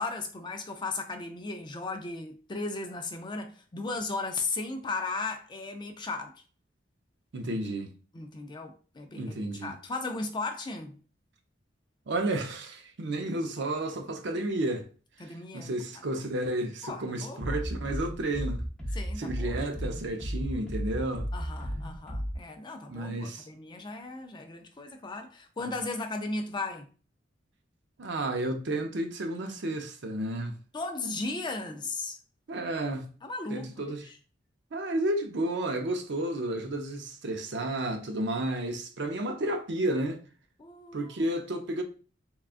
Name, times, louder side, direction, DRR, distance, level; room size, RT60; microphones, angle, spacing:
voice 1, 0.0-6.3 8.1-11.0 15.2-15.7 16.8-17.6 18.9-19.6 21.3-26.9 30.7-32.2 33.2-33.9 40.6-41.1, left 3 dB, 25° left, 0.4 m, -36 dB
voice 2, 7.3-7.9 9.2-9.7 12.1-14.9 15.5-18.6 19.2-21.3 22.9-23.5 28.0-30.5 32.5-33.1 33.5-34.1 34.7-40.2 40.9-41.8, right 1 dB, 65° right, 0.6 m, -32 dB
sound 1, 17.4-22.4, equal, 5° left, 0.9 m, -34 dB
3.6 x 2.2 x 2.4 m
head